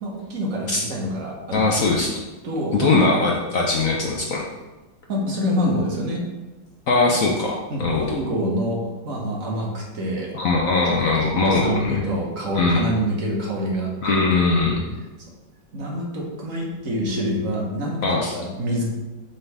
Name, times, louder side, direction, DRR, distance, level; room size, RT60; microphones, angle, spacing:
voice 1, 0.0-2.0 2.4-3.1 5.1-6.3 7.7-10.3 10.8-14.2 15.7-18.8, equal, 50° right, -2 dB, 1.5 m, -26 dB
voice 2, 1.5-2.2 2.7-4.4 6.9-8.2 10.3-12.1 12.5-12.9 14.0-14.8 18.0-18.3, left 3 dB, 60° left, -1 dB, 0.9 m, -21 dB
7.4 x 4.1 x 3.4 m, 1.1 s
omnidirectional pair, 2.0 m